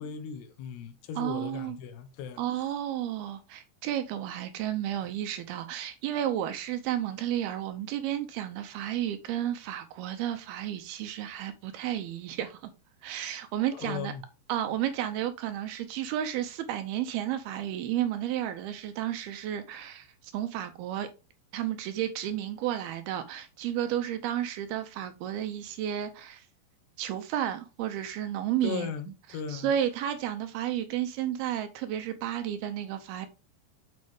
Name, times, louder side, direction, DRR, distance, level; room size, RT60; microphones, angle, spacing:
voice 1, 0.0-2.4 13.7-14.2 28.6-29.7, left 7 dB, 80° left, 3.1 m, -37 dB
voice 2, 1.2-1.8 2.4-12.7 13.0-14.1 14.5-21.1 21.5-26.5 27.0-28.9 29.5-33.3, right 11 dB, 80° right, 2.5 m, -32 dB
7.8 x 5.2 x 3.5 m
omnidirectional pair, 4.8 m